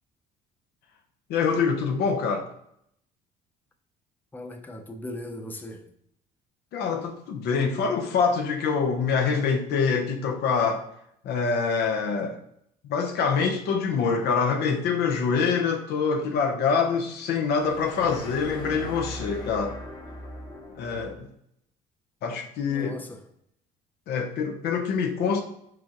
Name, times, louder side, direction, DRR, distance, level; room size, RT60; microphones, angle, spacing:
voice 1, 1.3-2.5 6.7-10.8 11.2-12.4 12.8-19.8 20.7-21.3 22.2-23.0 24.1-25.4, left 5 dB, 80° left, 0.8 m, -25 dB
voice 2, 4.3-5.9 22.6-23.3, left 1 dB, 10° left, 0.5 m, -39 dB
sound 1, 17.5-21.2, left 1 dB, 25° left, 0.9 m, -39 dB
4.9 x 3.7 x 3.0 m
cardioid pair, 110°, 17 cm